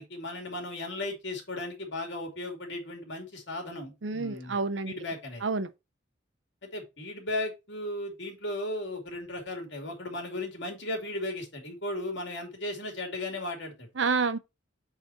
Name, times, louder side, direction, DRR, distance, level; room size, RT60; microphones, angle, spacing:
voice 1, 0.0-4.6 4.9-5.4 6.7-13.9, left 1 dB, 60° left, 2.7 m, -36 dB
voice 2, 4.0-4.9 5.4-5.7 14.0-14.4, right 4 dB, 65° right, 0.7 m, -28 dB
7.5 x 4.2 x 4.2 m
head